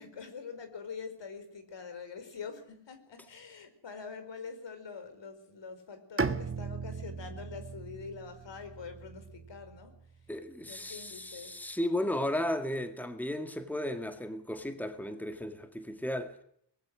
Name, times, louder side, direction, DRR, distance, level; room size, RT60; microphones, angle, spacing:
voice 1, 0.0-10.3 10.6-11.6, left 5 dB, 70° left, 4.5 m, -45 dB
Bowed string instrument, 6.2-10.1, right 4 dB, 30° right, 1.5 m, -37 dB
voice 2, 10.3-16.4, left 1 dB, 5° left, 2.1 m, -34 dB
24.0 x 20.0 x 6.3 m
wide cardioid pair, 100°, 44 cm